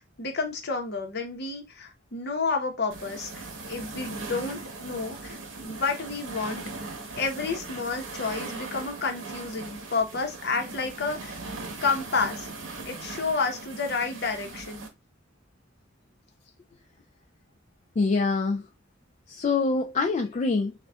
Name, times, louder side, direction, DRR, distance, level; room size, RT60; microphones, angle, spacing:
voice 1, 0.0-5.4 5.6-6.6 7.2-11.4 11.8-12.5 12.8-14.9, left 4 dB, 55° left, 0.9 m, -30 dB
sound 1, 2.9-14.9, right 3 dB, 70° right, 1.1 m, -39 dB
voice 2, 18.0-18.6 19.3-20.7, left 3 dB, 35° left, 0.3 m, -25 dB
6.6 x 2.4 x 2.3 m
head